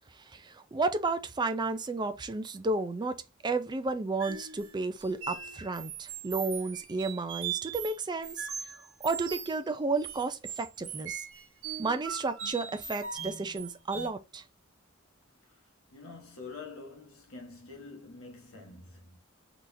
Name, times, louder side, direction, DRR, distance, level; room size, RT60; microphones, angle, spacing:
voice 1, 0.1-8.7 9.0-11.3 11.8-14.4, right 3 dB, 20° right, 0.4 m, -32 dB
sound 1, 4.2-9.6 10.0-14.1, right 7 dB, 65° right, 0.9 m, -40 dB
voice 2, 15.4-19.2, left 3 dB, 85° left, 1.1 m, -47 dB
3.9 x 2.9 x 2.6 m
head